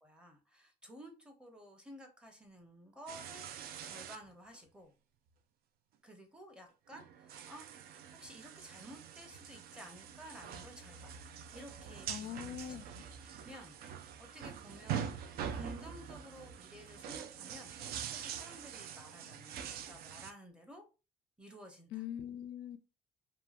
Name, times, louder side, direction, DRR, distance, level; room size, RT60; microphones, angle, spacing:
voice 1, 0.0-4.9 6.0-11.2 11.5-20.8 21.4-22.0, equal, 5° right, 0.7 m, -54 dB
sound 1, 3.1-4.2 4.5-4.6 6.9-20.3, right 8 dB, 65° right, 0.4 m, -44 dB
voice 2, 12.1-13.0 21.9-22.8, left 10 dB, 80° left, 0.4 m, -42 dB
2.8 x 2.3 x 2.4 m
cardioid pair, 110°, 17 cm